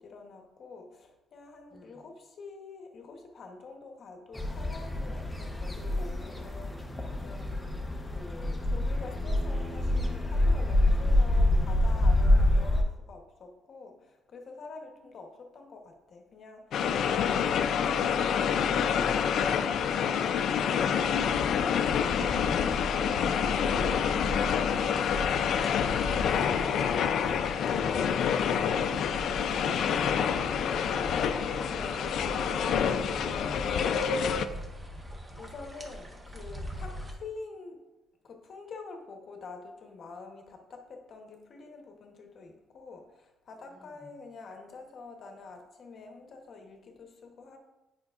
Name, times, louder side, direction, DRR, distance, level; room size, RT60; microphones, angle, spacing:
voice 1, 0.0-7.7 8.1-19.7 20.0-25.1 25.5-26.6 30.8-31.3 34.7-37.8 38.2-47.6, left 4 dB, 50° left, 3 dB, 1.0 m, -47 dB
voice 2, 1.7-2.0 7.7-8.0 30.6-33.9 43.8-44.1, left 2 dB, 25° left, 1 dB, 1.4 m, -46 dB
sound 1, 4.3-12.8, left 1 dB, 10° left, 0.7 m, -26 dB
sound 2, 16.7-34.5, left 7 dB, 65° left, 0.4 m, -27 dB
sound 3, 22.0-37.1, equal, 15° right, 0.9 m, -42 dB
8.7 x 5.2 x 2.4 m, 1.0 s
cardioid pair, 130°, 0 cm